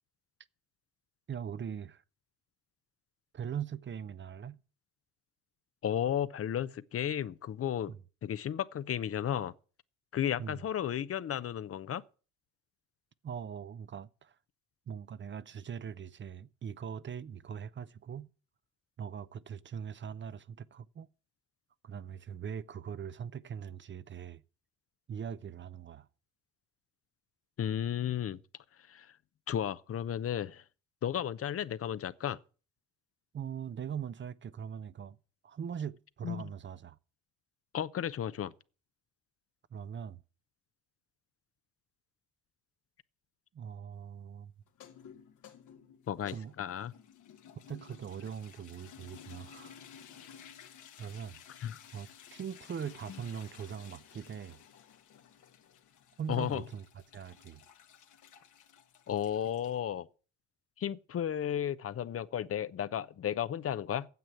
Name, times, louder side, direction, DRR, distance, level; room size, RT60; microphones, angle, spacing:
voice 1, 1.3-2.0 3.3-4.6 7.9-8.0 10.4-10.6 13.2-14.4 14.9-18.3 19.0-21.1 21.8-24.4 25.1-26.1 33.3-35.2 35.4-37.0 39.7-40.2 43.5-44.5 46.3-46.5 47.6-49.8 51.0-51.4 51.9-54.6 56.2-57.6, right 8 dB, 40° right, 0.6 m, -41 dB
voice 2, 5.8-7.9 8.2-9.5 10.1-12.0 27.6-28.4 28.9-29.1 29.5-30.6 31.0-32.4 36.2-36.4 37.7-38.5 46.1-46.9 51.6-51.8 56.3-56.6 59.1-60.1 60.8-64.1, left 10 dB, 50° left, 0.7 m, -33 dB
sound 1, 44.7-59.8, left 8 dB, 80° left, 1.7 m, -55 dB
9.3 x 7.7 x 8.4 m
cardioid pair, 90°, 30 cm